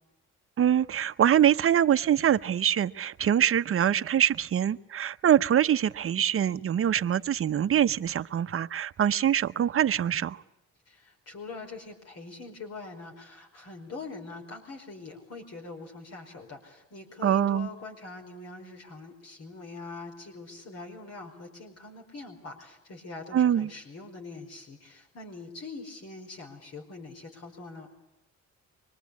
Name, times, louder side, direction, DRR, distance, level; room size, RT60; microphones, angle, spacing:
voice 1, 0.6-10.4 17.2-17.7 23.3-23.7, right 10 dB, 45° right, 11 dB, 0.8 m, -24 dB
voice 2, 10.8-27.9, left 3 dB, 55° left, 2 dB, 5.0 m, -43 dB
25.0 x 22.0 x 8.4 m, 0.94 s
cardioid pair, 90°, 30 cm